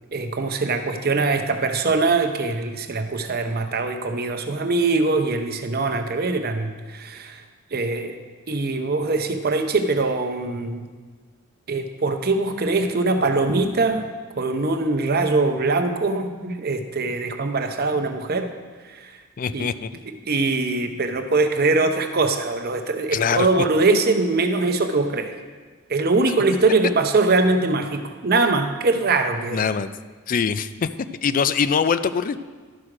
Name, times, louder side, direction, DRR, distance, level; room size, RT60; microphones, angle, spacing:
voice 1, 0.1-7.4 7.7-8.2 8.5-10.9 11.7-14.1 14.4-18.5 18.9-19.1 19.5-19.7 20.3-25.3 25.9-29.6, right 3 dB, 45° right, 7 dB, 0.7 m, -22 dB
voice 2, 19.4-19.9 23.1-23.5 29.5-29.9 30.3-30.9 31.2-32.4, left 6 dB, 40° left, 13 dB, 0.3 m, -23 dB
12.0 x 6.3 x 4.9 m, 1.5 s
head